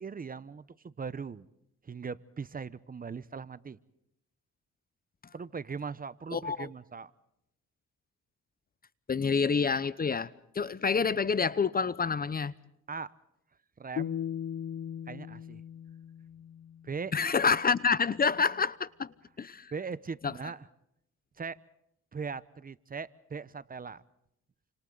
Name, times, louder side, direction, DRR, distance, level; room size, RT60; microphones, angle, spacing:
voice 1, 0.0-1.5 1.8-3.8 5.3-7.1 12.9-13.1 13.8-14.2 15.1-15.6 16.8-17.1 19.7-20.7 21.4-21.6 22.1-24.0, right 5 dB, 30° right, 0.9 m, -39 dB
voice 2, 6.3-6.7 9.1-12.5 17.1-19.7 20.2-20.3, left 5 dB, 30° left, 0.8 m, -28 dB
sound 1, 14.0-17.1, left 9 dB, 60° left, 0.9 m, -38 dB
29.0 x 26.5 x 4.0 m
cardioid pair, 90°, 30 cm